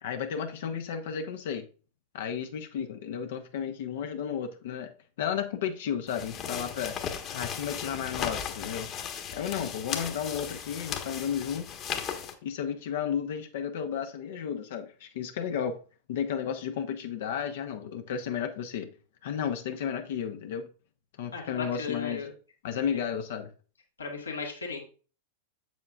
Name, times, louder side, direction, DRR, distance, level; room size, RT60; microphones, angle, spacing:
voice 1, 0.0-1.7 2.1-4.9 5.2-7.0 7.3-8.9 9.3-11.7 12.4-15.8 16.1-18.9 19.2-20.7 21.2-22.2 22.6-23.5, left 8 dB, 65° left, 0.8 m, -33 dB
sound 1, 6.1-12.3, left 8 dB, 35° left, 1.2 m, -36 dB
voice 2, 21.3-22.3 22.7-23.1 24.0-24.8, left 4 dB, 85° left, 1.9 m, -36 dB
7.4 x 7.4 x 2.4 m
hypercardioid pair, 100°, 0 cm